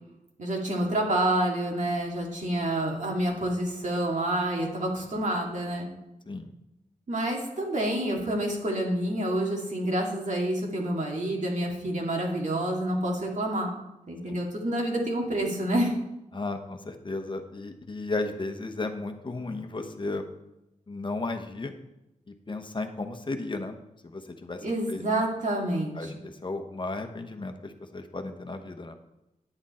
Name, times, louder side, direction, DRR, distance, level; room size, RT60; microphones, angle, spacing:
voice 1, 0.4-5.9 7.1-13.7 14.1-15.9 24.6-26.1, right 1 dB, 65° right, -1 dB, 2.3 m, -28 dB
voice 2, 16.3-20.2 20.9-21.7 22.3-23.8 24.0-25.0 26.0-29.0, left 2 dB, 35° left, 6 dB, 1.0 m, -34 dB
9.9 x 8.8 x 4.3 m, 0.91 s
wide cardioid pair, 105°, 14 cm